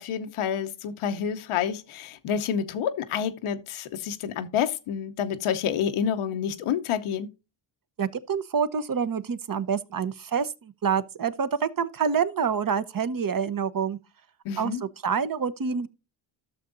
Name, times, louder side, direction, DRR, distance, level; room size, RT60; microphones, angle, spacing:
voice 1, 0.0-7.3 14.4-14.8, left 8 dB, 90° left, 0.9 m, -28 dB
voice 2, 8.0-14.0 14.6-14.7 15.0-15.9, right 6 dB, 45° right, 0.9 m, -27 dB
12.5 x 6.8 x 2.6 m
cardioid pair, 55°, 48 cm